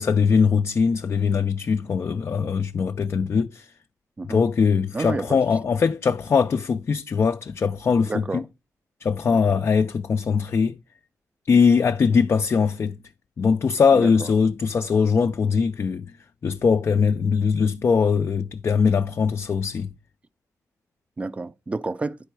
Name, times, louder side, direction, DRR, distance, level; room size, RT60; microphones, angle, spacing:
voice 1, 0.0-3.7 4.3-8.4 9.0-10.8 11.5-13.0 13.4-16.1 16.4-19.9, left 5 dB, 40° left, 0.4 m, -21 dB
voice 2, 4.9-5.4 8.1-8.4 9.3-9.6 13.9-14.3 21.2-22.2, right 3 dB, 20° right, 0.4 m, -30 dB
10.5 x 4.5 x 4.6 m
wide cardioid pair, 135°, 6 cm